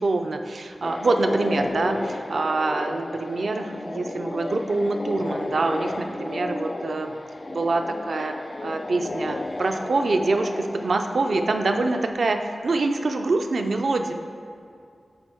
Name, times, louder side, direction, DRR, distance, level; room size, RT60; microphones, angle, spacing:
voice 1, 0.0-7.1 7.5-8.3 8.6-14.1, right 3 dB, 70° right, 6 dB, 0.4 m, -25 dB
sound 1, 0.8-12.1, left 2 dB, 40° left, 0.3 m, -33 dB
7.7 x 4.4 x 4.5 m, 2.3 s
wide cardioid pair, 90°, 0 cm